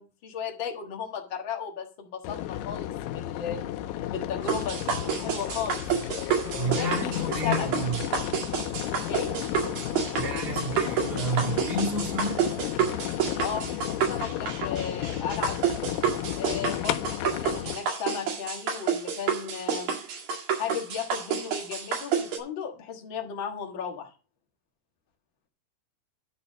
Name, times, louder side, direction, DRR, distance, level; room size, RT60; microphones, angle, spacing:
voice 1, 0.0-3.6 4.1-5.9 6.6-7.7 9.1-9.4 13.4-15.8 16.3-19.9 20.6-24.1, left 7 dB, 55° left, 1.4 m, -35 dB
sound 1, 2.2-17.8, left 12 dB, 85° left, 2.7 m, -33 dB
sound 2, 4.5-22.4, right 7 dB, 65° right, 3.8 m, -29 dB
voice 2, 6.5-8.0 10.1-12.5, right 1 dB, 25° right, 1.2 m, -30 dB
11.5 x 4.3 x 6.4 m
omnidirectional pair, 4.6 m